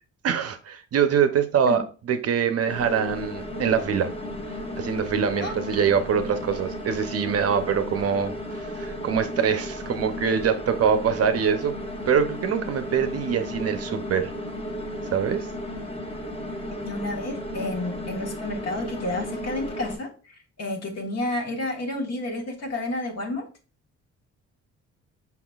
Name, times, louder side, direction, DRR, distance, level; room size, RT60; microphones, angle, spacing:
voice 1, 0.2-4.1 4.8-11.8 12.1-14.3 15.1-15.5, right 7 dB, 50° right, 0.6 m, -24 dB
sound 1, 2.7-20.0, left 1 dB, 20° left, 1.0 m, -34 dB
voice 2, 16.8-20.1 20.6-23.5, left 2 dB, 55° left, 1.3 m, -30 dB
5.6 x 3.9 x 2.3 m
cardioid pair, 90°, 30 cm